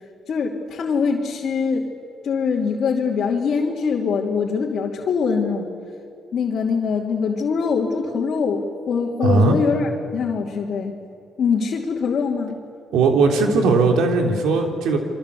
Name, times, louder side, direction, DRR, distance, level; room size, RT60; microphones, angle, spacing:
voice 1, 0.3-1.9 2.2-5.7 6.3-10.9 11.4-12.6, left 5 dB, 60° left, -3 dB, 2.9 m, -23 dB
voice 2, 9.2-9.6 12.9-15.0, right 3 dB, 85° right, 3 dB, 3.5 m, -18 dB
27.5 x 24.0 x 8.5 m, 2.4 s
cardioid pair, 90°, 0 cm